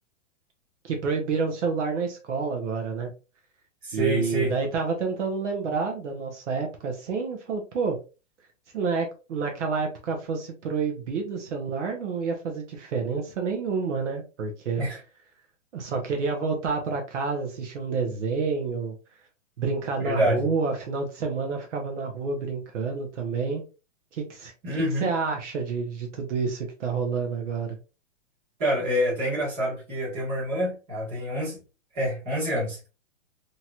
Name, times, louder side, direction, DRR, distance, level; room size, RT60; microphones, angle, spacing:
voice 1, 0.8-3.1 3.9-8.0 8.7-14.8 15.7-18.9 19.6-23.6 24.1-27.8, right 5 dB, 65° right, 0.8 m, -29 dB
voice 2, 3.8-4.5 14.8-15.0 20.0-20.5 24.6-25.1 28.6-31.6 31.9-32.8, equal, 20° right, 1.3 m, -27 dB
2.9 x 2.9 x 2.3 m
hypercardioid pair, 175°, 38 cm